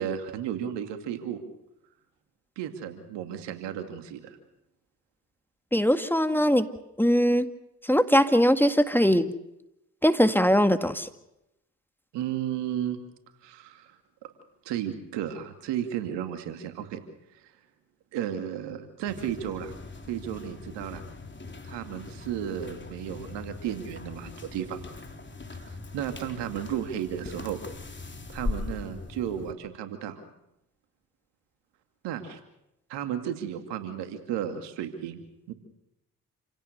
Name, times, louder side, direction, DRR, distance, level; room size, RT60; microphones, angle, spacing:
voice 1, 0.0-1.4 2.6-4.4 12.1-13.0 13.4-13.9 14.6-17.0 18.1-19.7 20.1-21.0 21.6-24.8 25.5-27.6 28.3-30.2 32.0-32.4 32.9-35.2 35.5-35.6, right 10 dB, 80° right, 7 dB, 2.5 m, -33 dB
voice 2, 5.7-6.7 7.0-7.5 7.8-9.3 10.0-11.1, equal, 5° left, 9 dB, 2.0 m, -21 dB
sound 1, 19.1-29.5, left 3 dB, 25° left, 3.7 m, -40 dB
28.5 x 17.0 x 6.7 m, 0.87 s
hypercardioid pair, 45°, 41 cm